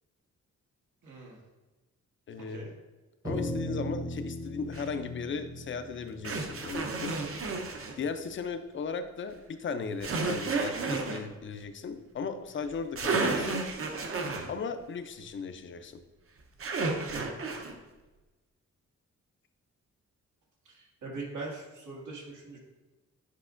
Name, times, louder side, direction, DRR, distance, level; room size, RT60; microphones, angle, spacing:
voice 1, 1.0-1.4 2.4-2.7 20.7-22.6, right 3 dB, 85° right, -3 dB, 1.9 m, -42 dB
voice 2, 2.3-2.7 3.2-7.1 8.0-13.6 14.5-16.0, left 5 dB, 40° left, 9 dB, 0.4 m, -37 dB
sound 1, 3.2-7.8, equal, 10° right, 0.7 m, -38 dB
sound 2, 4.7-4.9 6.2-7.9 10.0-11.2 12.6-12.7 13.0-14.5 16.6-17.7, right 3 dB, 50° right, 0.7 m, -31 dB
8.3 x 5.2 x 2.5 m, 1.2 s
wide cardioid pair, 160°, 30 cm